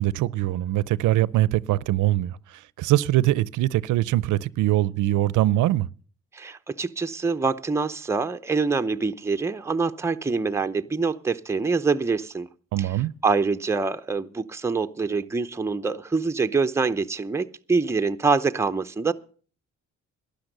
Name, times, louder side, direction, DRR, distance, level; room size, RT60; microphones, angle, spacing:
voice 1, 0.0-2.4 2.8-5.9 12.7-13.1, right 15 dB, 80° right, 0.6 m, -22 dB
voice 2, 6.3-12.5 12.8-13.0 13.2-19.1, right 4 dB, 10° right, 0.6 m, -25 dB
12.5 x 10.5 x 6.6 m
cardioid pair, 90°, 30 cm